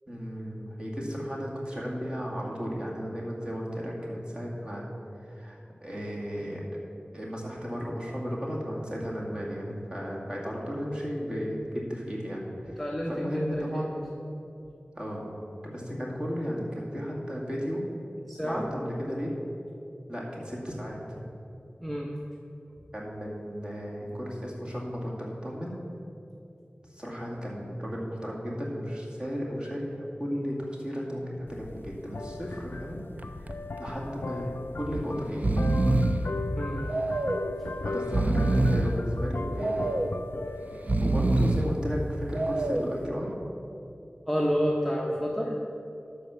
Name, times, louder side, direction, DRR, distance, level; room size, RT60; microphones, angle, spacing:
voice 1, 0.1-4.9 5.3-6.6 7.1-12.8 13.1-14.1 15.0-15.3 15.6-17.8 18.4-19.3 20.1-21.2 22.9-25.8 26.9-33.5 33.8-35.5 37.8-39.9 41.0-43.3, equal, 25° right, -4 dB, 2.2 m, -34 dB
voice 2, 12.7-13.6 18.3-18.7 21.8-22.1 36.5-36.8 37.6-37.8 44.3-45.6, equal, ahead, -2 dB, 0.9 m, -29 dB
sound 1, 31.5-43.1, left 3 dB, 70° left, 0.3 m, -38 dB
Breathing, 33.2-33.5 33.9-34.0 34.8-35.0 35.3-36.3 36.9-37.5 38.0-39.0 39.6-40.2 40.7-41.8 42.3-43.0, right 2 dB, 40° right, 0.5 m, -25 dB
12.0 x 4.4 x 7.0 m, 2.7 s
wide cardioid pair, 55°, 4 cm